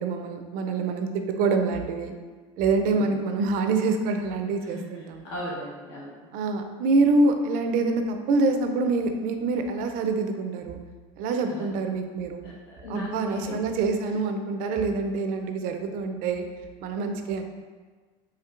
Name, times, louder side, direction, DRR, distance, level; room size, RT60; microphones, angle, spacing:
voice 1, 0.0-2.1 2.6-5.2 6.3-10.8 11.2-12.5 12.9-16.4 16.8-17.4, right 3 dB, 60° right, 6 dB, 0.5 m, -26 dB
voice 2, 5.2-6.1 11.5-11.7 12.4-13.6, equal, 75° left, -7 dB, 1.2 m, -36 dB
4.4 x 3.0 x 2.4 m, 1.4 s
supercardioid pair, 105°, 16 cm